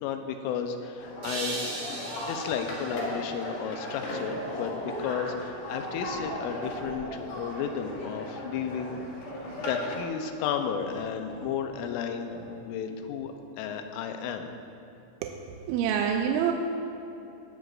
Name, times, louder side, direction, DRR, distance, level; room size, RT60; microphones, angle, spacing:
voice 1, 0.0-1.9 2.2-9.0 9.6-12.3 12.6-14.5, left 7 dB, 85° left, 6 dB, 3.2 m, -33 dB
sound 1, 1.0-10.0, left 1 dB, 55° left, 3.5 m, -37 dB
sound 2, 1.2-4.4, right 2 dB, 60° right, 2.0 m, -39 dB
sound 3, 4.0-5.5 6.1-7.4 7.8-9.1 9.4-9.8 10.5-13.4, equal, 20° left, 2.3 m, -46 dB
voice 2, 15.2-16.5, right 8 dB, 85° right, 3 dB, 2.7 m, -27 dB
18.5 x 12.5 x 2.6 m, 2.8 s
omnidirectional pair, 5.7 m